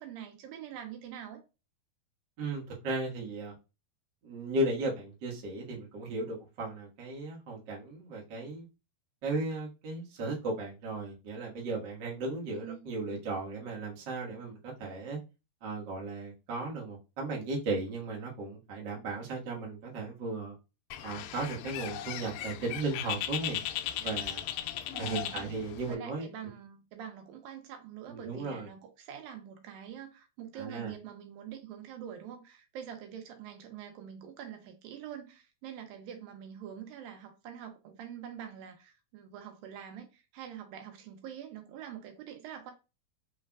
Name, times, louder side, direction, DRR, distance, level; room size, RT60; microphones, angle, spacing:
voice 1, 0.0-1.4 12.5-12.9 24.9-25.5 25.9-42.7, right 9 dB, 80° right, 2.4 m, -45 dB
voice 2, 2.4-3.5 4.2-8.7 9.2-15.2 15.6-20.5 21.0-23.6 24.0-24.4 25.0-26.3 28.1-28.7 30.5-30.9, right 2 dB, 55° right, 1.3 m, -36 dB
Bird, 20.9-26.0, left 12 dB, 80° left, 2.1 m, -37 dB
5.5 x 3.2 x 2.3 m
omnidirectional pair, 4.3 m